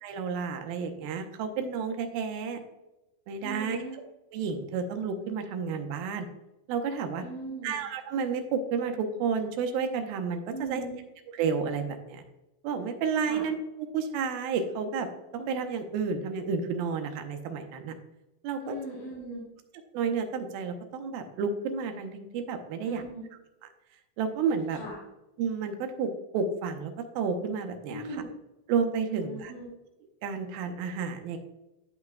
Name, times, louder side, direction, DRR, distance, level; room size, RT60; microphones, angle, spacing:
voice 1, 0.0-2.6 3.3-4.0 4.3-6.3 6.7-7.3 7.6-10.8 11.4-12.2 12.6-13.6 13.9-17.9 18.4-18.7 19.9-23.0 24.2-24.8 25.4-28.2 28.7-29.5 30.2-31.4, right 5 dB, 90° right, 6 dB, 2.7 m, -31 dB
voice 2, 3.4-4.0 7.2-7.8 10.5-11.0 13.3-13.4 18.6-19.4 22.8-23.2 24.7-25.0 27.9-28.2 29.1-29.7, right 1 dB, 65° left, -6 dB, 3.8 m, -39 dB
13.0 x 5.7 x 2.3 m, 0.97 s
omnidirectional pair, 4.2 m